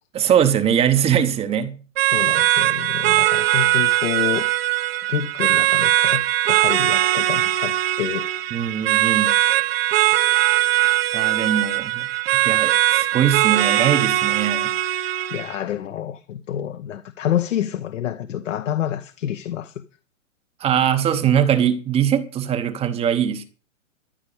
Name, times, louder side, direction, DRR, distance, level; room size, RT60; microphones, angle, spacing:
voice 1, 0.1-1.8 8.5-9.3 11.1-14.7 20.6-23.4, right 9 dB, 15° right, 0.8 m, -21 dB
sound 1, 2.0-15.5, right 15 dB, 50° right, 0.8 m, -20 dB
voice 2, 2.1-4.5 5.1-8.3 15.3-19.7, left 10 dB, 65° left, 1.1 m, -28 dB
14.0 x 5.2 x 8.5 m
hypercardioid pair, 135°, 39 cm